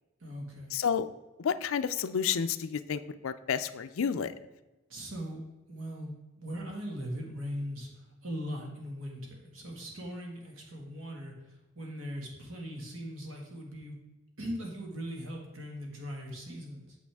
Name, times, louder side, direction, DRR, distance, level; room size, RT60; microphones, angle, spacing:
voice 1, 0.2-0.8 4.9-5.4 5.7-7.9 8.2-11.3 11.8-14.0 14.4-17.0, equal, 80° right, 0 dB, 1.7 m, -39 dB
voice 2, 0.7-1.1 1.4-4.3, left 7 dB, 85° left, 12 dB, 0.4 m, -30 dB
8.6 x 6.7 x 3.5 m, 1.1 s
head